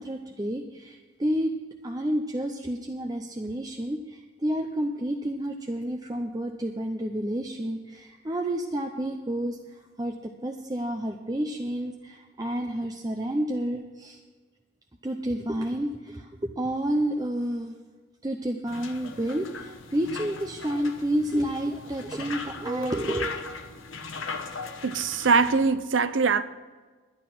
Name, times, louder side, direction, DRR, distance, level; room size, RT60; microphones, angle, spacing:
voice 1, 0.0-1.5 1.8-14.2 15.0-17.7 18.2-23.3, right 1 dB, 20° right, 0.6 m, -30 dB
sound 1, 18.7-25.7, left 4 dB, 80° left, 1.2 m, -39 dB
voice 2, 24.8-26.4, right 5 dB, 70° right, 0.6 m, -22 dB
11.0 x 10.5 x 5.9 m
head